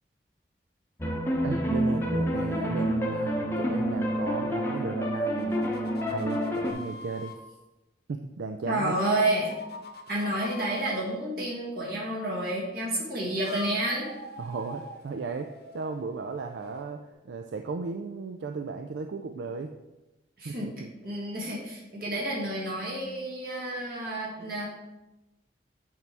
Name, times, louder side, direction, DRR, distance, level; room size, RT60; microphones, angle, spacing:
sound 1, 1.0-6.7, equal, 15° left, 0.7 m, -28 dB
voice 1, 1.4-5.6 6.1-7.6 8.1-9.0 14.4-15.5 15.7-19.7 20.4-20.9, right 4 dB, 80° right, 6 dB, 0.4 m, -35 dB
sound 2, 5.2-7.4 8.9-11.0 13.1-17.1, left 1 dB, 60° left, 0.8 m, -45 dB
voice 2, 8.7-9.5 10.1-14.1 20.4-20.7 21.0-24.7, right 1 dB, 55° right, -4 dB, 2.1 m, -30 dB
8.3 x 4.6 x 3.5 m, 1.0 s
head